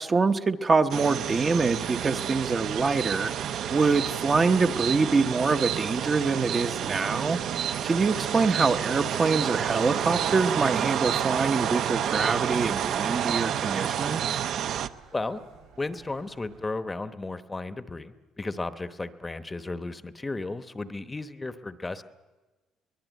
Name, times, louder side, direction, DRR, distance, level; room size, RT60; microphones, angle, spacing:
voice 1, 0.0-3.3 3.7-7.4 7.8-14.2, right 4 dB, 25° right, 8 dB, 0.8 m, -25 dB
sound 1, 0.9-14.9, right 9 dB, 60° right, 0.8 m, -29 dB
sound 2, 1.0-16.7, right 7 dB, 90° right, 7.8 m, -53 dB
voice 2, 15.8-22.0, left 2 dB, 15° left, 11 dB, 0.9 m, -34 dB
23.5 x 20.5 x 9.2 m, 1.2 s
cardioid pair, 130°, 0 cm